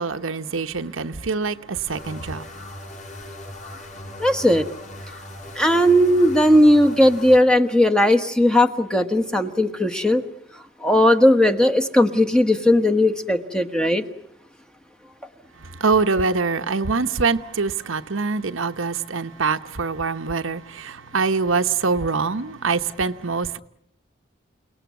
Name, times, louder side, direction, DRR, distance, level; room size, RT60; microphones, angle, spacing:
voice 1, 0.0-2.5 15.6-23.6, right 4 dB, 75° right, 1.0 m, -24 dB
sound 1, 1.9-7.4, left 1 dB, 35° left, 5.7 m, -38 dB
voice 2, 4.2-4.6 5.6-10.2 10.8-14.0, left 1 dB, 5° left, 1.2 m, -17 dB
29.5 x 18.5 x 9.4 m
head